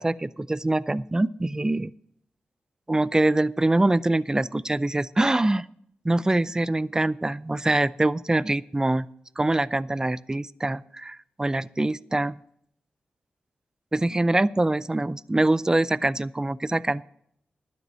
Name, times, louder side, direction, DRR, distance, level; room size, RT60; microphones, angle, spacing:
voice 1, 0.0-1.9 2.9-5.7 6.0-9.1 9.4-12.4 13.9-17.0, right 2 dB, 20° right, 20 dB, 0.5 m, -24 dB
12.0 x 9.7 x 6.2 m, 0.70 s
cardioid pair, 60°, 3 cm